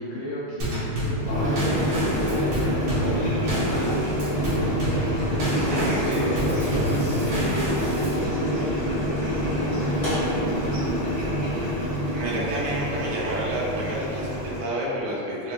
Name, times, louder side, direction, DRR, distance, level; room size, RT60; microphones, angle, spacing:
voice 1, 0.0-4.4 5.4-10.8, left 1 dB, 75° left, -7 dB, 1.7 m, -34 dB
Drum kit / Snare drum / Bass drum, 0.6-8.3, right 1 dB, 60° right, 1.5 m, -29 dB
Boiling, 1.2-14.7, equal, 30° left, 1.1 m, -26 dB
voice 2, 5.7-6.4 12.1-15.5, right 1 dB, 80° right, -6 dB, 1.9 m, -29 dB
5.4 x 2.6 x 2.3 m, 2.6 s
omnidirectional pair, 3.5 m